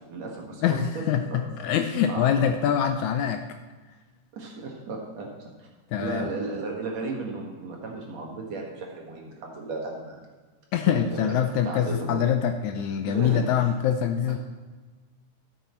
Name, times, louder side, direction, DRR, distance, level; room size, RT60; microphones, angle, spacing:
voice 1, 0.1-1.4 2.1-2.7 4.3-5.7 6.0-10.2 10.9-12.2 13.1-13.4, right 3 dB, 60° right, 0 dB, 2.6 m, -35 dB
voice 2, 0.6-3.4 5.9-6.3 10.7-14.4, left 8 dB, 80° left, 7 dB, 1.7 m, -24 dB
13.0 x 7.9 x 4.3 m, 1.3 s
omnidirectional pair, 3.7 m